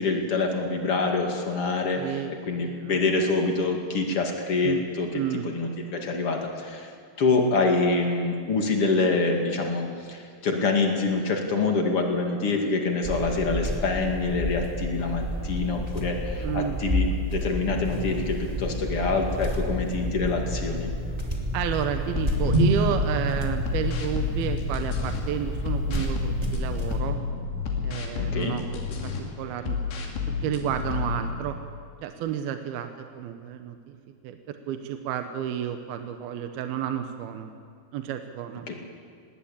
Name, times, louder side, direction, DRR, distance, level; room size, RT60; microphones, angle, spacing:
voice 1, 0.0-2.2 2.5-5.1 5.4-6.9 7.2-20.9 28.2-28.6 38.7-38.8, left 3 dB, 40° left, 2 dB, 2.6 m, -26 dB
voice 2, 2.0-3.0 4.6-4.9 5.1-5.5 16.4-16.8 17.4-17.5 21.5-27.2 27.8-31.6 32.0-34.0 34.2-37.5 37.9-38.7, right 10 dB, 70° right, 7 dB, 2.6 m, -31 dB
sound 1, 13.0-27.0, equal, 15° right, 1.3 m, -29 dB
sound 2, 22.1-25.2 25.7-29.2 29.7-31.4, left 5 dB, 85° left, 4.7 m, -31 dB
19.5 x 18.5 x 8.8 m, 2.1 s
omnidirectional pair, 4.9 m